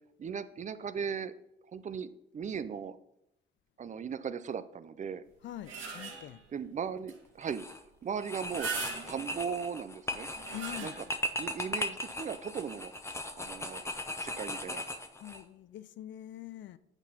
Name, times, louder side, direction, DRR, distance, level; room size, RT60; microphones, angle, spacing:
voice 1, 0.2-1.3 1.7-3.0 3.8-5.2 6.5-7.6 8.0-8.7 9.1-10.3 10.8-10.9 11.4-12.9 13.4-13.8 14.2-14.8, right 7 dB, 40° right, 0.5 m, -37 dB
sound 1, 5.3-6.5 7.1-7.2 7.5-7.6 8.3-9.4 10.1-11.3 11.7-11.8 12.9-13.1, right 5 dB, 80° right, 2.0 m, -40 dB
voice 2, 5.4-6.4 10.5-11.0 15.2-16.8, left 13 dB, 70° left, 0.5 m, -44 dB
sound 2, 7.4-7.8 8.2-15.4, left 1 dB, 15° left, 0.8 m, -38 dB
9.0 x 4.1 x 5.4 m
cardioid pair, 90°, 20 cm